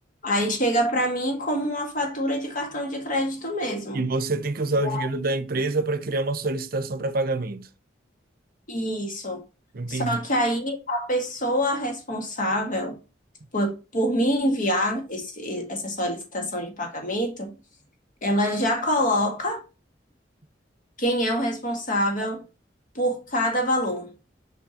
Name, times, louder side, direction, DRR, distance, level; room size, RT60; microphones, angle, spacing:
voice 1, 0.2-4.0 4.8-5.1 8.7-9.4 9.9-13.0 13.5-17.5 18.2-19.6 21.0-22.4 23.0-24.1, equal, 50° left, 1.8 m, -26 dB
voice 2, 3.9-7.7 9.7-10.2, right 2 dB, 55° right, 0.7 m, -26 dB
6.1 x 5.5 x 2.9 m
head